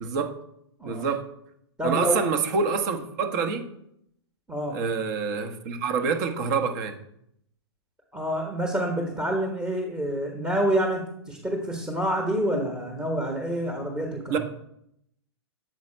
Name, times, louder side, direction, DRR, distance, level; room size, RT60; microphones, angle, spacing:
voice 1, 0.0-0.3 0.8-1.2 1.8-3.7 4.7-7.0 14.3-14.4, right 5 dB, 45° right, 7 dB, 1.0 m, -26 dB
voice 2, 1.8-2.2 4.5-4.8 8.1-14.4, equal, 5° right, 1 dB, 1.1 m, -27 dB
7.6 x 4.0 x 4.3 m, 0.75 s
figure-of-eight pair, 115°, 14 cm